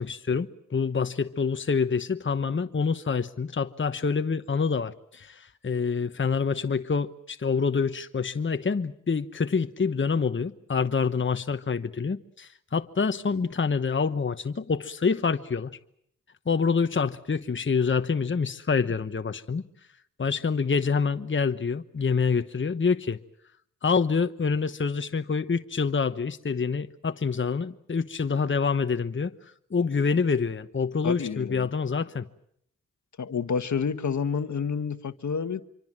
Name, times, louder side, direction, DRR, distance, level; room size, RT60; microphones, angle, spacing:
voice 1, 0.0-15.8 16.5-19.6 20.2-23.2 23.8-29.3 29.7-32.3, left 5 dB, 35° left, 1.1 m, -26 dB
voice 2, 31.0-31.7 33.2-35.6, left 6 dB, 60° left, 1.4 m, -29 dB
26.0 x 24.5 x 7.6 m
supercardioid pair, 40°, 32 cm